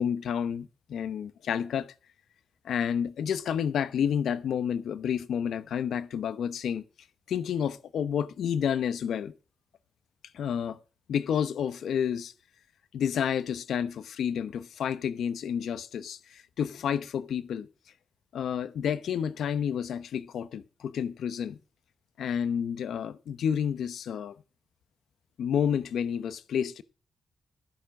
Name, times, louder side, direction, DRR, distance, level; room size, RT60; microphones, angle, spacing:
voice 1, 0.0-1.9 2.6-6.8 7.3-9.3 10.3-10.8 11.1-12.3 12.9-17.7 18.3-21.6 22.2-24.3 25.4-26.8, left 8 dB, 80° left, 0.8 m, -30 dB
13.0 x 7.2 x 6.1 m
cardioid pair, 85°, 0 cm